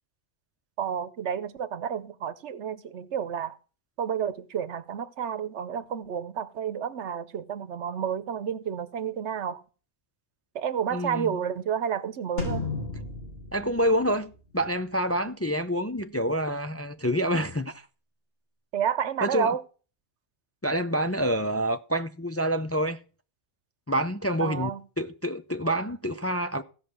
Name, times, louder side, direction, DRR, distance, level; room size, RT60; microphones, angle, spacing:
voice 1, 0.8-3.6 4.0-9.6 10.5-12.7 18.7-19.6 24.4-24.8, right 8 dB, 90° right, 1.2 m, -30 dB
voice 2, 10.9-11.4 13.5-17.9 19.2-19.5 20.6-23.0 23.9-24.7 25.0-26.6, equal, 20° left, 0.4 m, -27 dB
sound 1, 12.4-14.9, left 3 dB, 60° left, 4.2 m, -34 dB
16.0 x 5.7 x 6.3 m
omnidirectional pair, 1.1 m